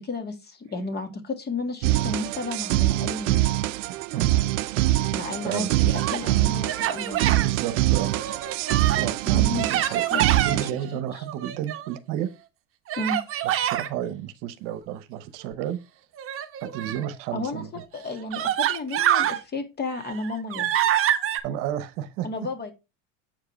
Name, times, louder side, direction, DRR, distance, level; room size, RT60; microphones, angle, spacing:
voice 1, 0.0-3.7 5.1-7.4 9.0-10.2 10.5-10.7 13.0-13.2 17.3-17.6 17.9-20.7 22.2-22.7, left 3 dB, 25° left, 2.0 m, -33 dB
sound 1, 1.8-10.7, right 16 dB, 85° right, 0.6 m, -24 dB
Human voice, 5.6-6.3 6.7-7.5 8.0-9.1 9.6-10.6 11.2-12.0 12.9-13.9 16.2-17.1 17.8-17.9 18.3-19.4 19.9-21.4, right 11 dB, 35° right, 1.0 m, -26 dB
voice 2, 7.4-8.2 9.0-12.3 13.4-15.8 16.6-17.7 21.4-22.3, right 11 dB, 60° right, 1.0 m, -32 dB
7.7 x 4.8 x 4.4 m
supercardioid pair, 115°, 36 cm